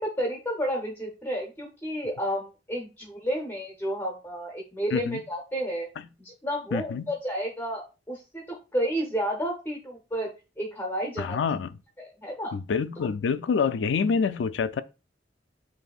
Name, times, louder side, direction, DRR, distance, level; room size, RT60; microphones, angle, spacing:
voice 1, 0.0-5.9 6.2-8.4 8.7-10.3 10.6-11.4 12.0-12.5, equal, 10° left, 0.7 m, -31 dB
voice 2, 4.9-5.2 6.7-7.1 11.2-11.8 12.5-14.8, left 5 dB, 75° left, 0.4 m, -27 dB
7.7 x 2.7 x 2.4 m
head